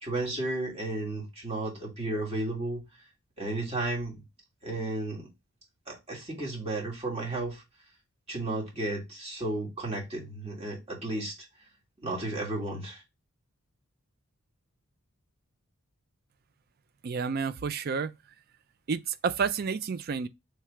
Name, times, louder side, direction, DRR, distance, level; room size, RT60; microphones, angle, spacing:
voice 1, 0.0-2.8 3.4-4.2 4.6-5.3 5.9-7.6 8.3-11.4 12.0-13.0, right 2 dB, 30° right, 1.7 m, -33 dB
voice 2, 17.0-18.1 18.9-20.3, right 5 dB, 45° right, 0.4 m, -30 dB
3.3 x 3.2 x 4.7 m
head